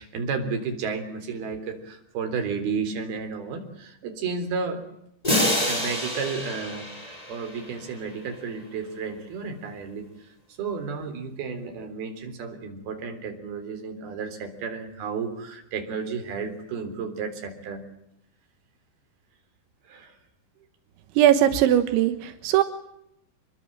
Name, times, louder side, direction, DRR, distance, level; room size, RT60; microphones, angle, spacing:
voice 1, 0.0-4.8 5.6-6.9 7.3-10.1 10.6-17.8 19.9-20.2, right 5 dB, 60° right, 7 dB, 5.4 m, -32 dB
sound 1, 5.2-8.1, left 1 dB, 10° left, 5.3 m, -27 dB
voice 2, 21.2-22.6, right 11 dB, 90° right, 9 dB, 3.7 m, -19 dB
27.5 x 22.5 x 8.9 m, 0.78 s
omnidirectional pair, 5.1 m